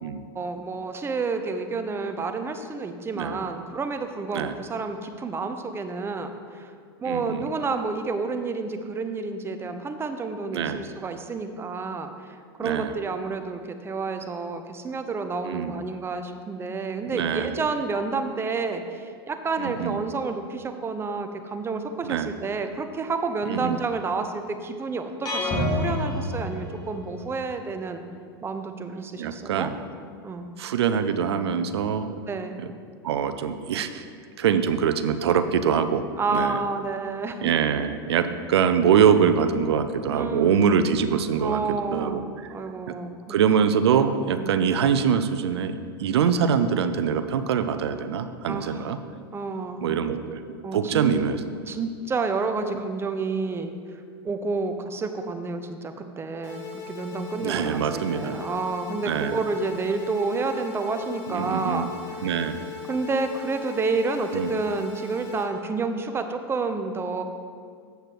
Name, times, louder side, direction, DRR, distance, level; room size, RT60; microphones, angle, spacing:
voice 1, 0.3-6.7 7.0-28.0 28.4-29.7 30.2-30.5 32.3-32.6 36.2-37.4 40.1-40.8 41.4-42.2 42.5-43.5 44.3-44.5 48.5-48.9 49.3-49.9 50.6-51.2 51.7-53.7 54.2-62.3 62.9-67.2, right 4 dB, 20° right, 7 dB, 0.7 m, -30 dB
voice 2, 7.0-7.5 10.5-10.8 12.6-12.9 15.4-15.7 17.1-17.5 19.6-20.0 22.0-22.3 23.5-23.8 29.2-29.7 30.6-32.2 32.6-32.7 33.0-34.0 34.4-36.0 36.3-36.6 37.4-42.2 42.9-43.0 43.3-49.0 49.8-50.4 50.7-51.4 57.4-58.4 59.1-59.4 61.3-61.9 62.2-62.6 64.3-64.5, right 7 dB, 80° right, 10 dB, 0.6 m, -24 dB
sound 1, 25.3-27.3, left 1 dB, 30° left, 2.2 m, -27 dB
sound 2, 56.4-65.4, left 7 dB, 60° left, 1.7 m, -38 dB
7.9 x 6.7 x 4.5 m, 2.1 s
hypercardioid pair, 110°, 13 cm